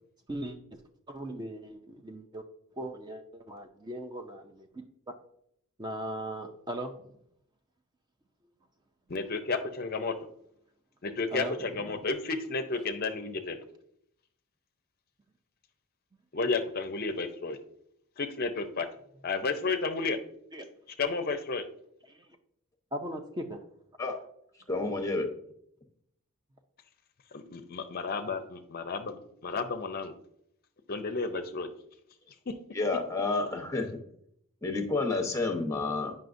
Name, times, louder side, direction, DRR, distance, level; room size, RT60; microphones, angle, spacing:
voice 1, 0.3-0.8 1.1-2.4 2.8-4.8 5.8-6.9 11.3-11.5 20.5-20.7 22.1-22.2 22.9-23.6, right 1 dB, 20° right, 5 dB, 0.4 m, -38 dB
voice 2, 9.1-10.1 11.0-13.6 16.3-17.6 18.2-18.9 19.2-20.2 21.0-21.6 27.3-30.1 30.9-31.7 32.5-32.6, left 4 dB, 45° left, 8 dB, 0.5 m, -32 dB
voice 3, 24.7-25.3 32.7-33.9 34.6-36.1, left 3 dB, 15° left, 4 dB, 0.8 m, -30 dB
9.2 x 5.5 x 2.6 m, 0.72 s
head